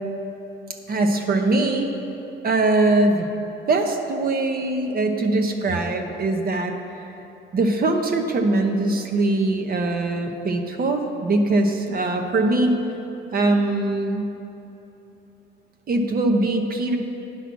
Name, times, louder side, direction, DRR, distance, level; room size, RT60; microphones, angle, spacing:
voice 1, 0.9-1.9 2.4-3.3 3.7-6.7 7.5-12.8 13.3-14.3 15.9-17.0, right 2 dB, 50° right, 4 dB, 0.9 m, -21 dB
9.8 x 5.9 x 6.0 m, 3.0 s
cardioid pair, 90°, 20 cm